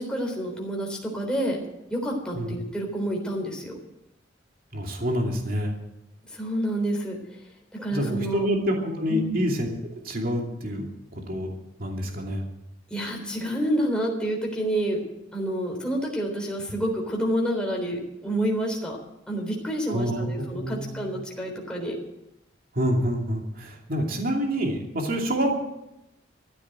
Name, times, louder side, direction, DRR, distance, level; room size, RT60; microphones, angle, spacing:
voice 1, 0.0-1.6 1.9-3.7 6.3-7.2 7.7-8.5 9.1-9.5 12.9-15.0 15.3-19.0 19.3-22.0 25.4-25.5, right 1 dB, 5° left, -1 dB, 3.7 m, -28 dB
voice 2, 4.7-5.7 7.9-9.7 10.0-10.9 11.1-11.5 11.8-12.4 19.9-21.1 22.7-25.5, equal, 50° right, 1 dB, 2.6 m, -27 dB
14.5 x 9.9 x 8.9 m, 0.88 s
head